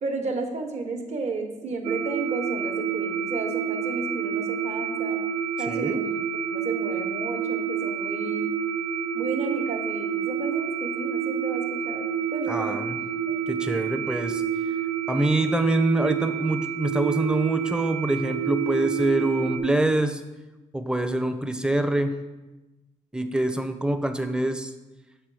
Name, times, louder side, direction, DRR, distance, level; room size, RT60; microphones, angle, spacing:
voice 1, 0.0-5.2 5.6-8.5 9.1-12.0 12.3-13.4, right 3 dB, 60° right, 4 dB, 1.0 m, -33 dB
sound 1, 1.8-19.6, right 8 dB, 40° right, 0.7 m, -28 dB
voice 2, 5.7-6.0 12.5-13.0 13.5-14.4 15.1-20.2 20.7-22.2 23.1-24.7, right 1 dB, 5° right, 8 dB, 0.5 m, -25 dB
7.6 x 3.7 x 4.7 m, 1.1 s
cardioid pair, 95°, 13 cm